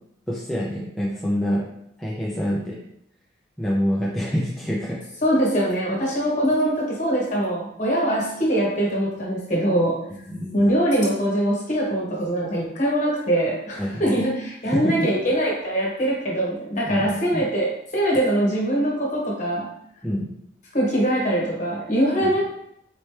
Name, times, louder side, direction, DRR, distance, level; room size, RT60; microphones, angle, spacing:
voice 1, 0.3-1.7 2.0-2.8 3.6-5.0 10.3-10.6 13.8-14.0 14.6-15.1 16.9-17.4 20.0-20.3 22.2-22.4, equal, ahead, -6 dB, 0.5 m, -26 dB
voice 2, 5.2-10.0 10.5-19.7 20.7-22.5, right 1 dB, 35° left, -4 dB, 1.3 m, -22 dB
4.2 x 3.1 x 3.2 m, 0.75 s
head